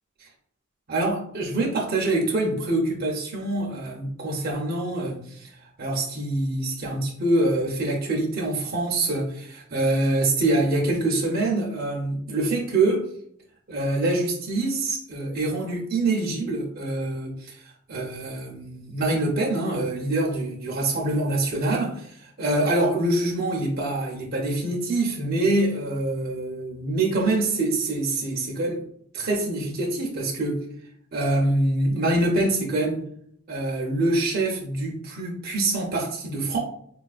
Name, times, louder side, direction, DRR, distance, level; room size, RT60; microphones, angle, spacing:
voice 1, 0.9-5.5 5.8-13.0 13.7-28.8 29.1-30.6 31.1-33.0 33.5-36.6, right 2 dB, 50° right, -2 dB, 0.6 m, -25 dB
4.4 x 2.3 x 2.4 m, 0.68 s
head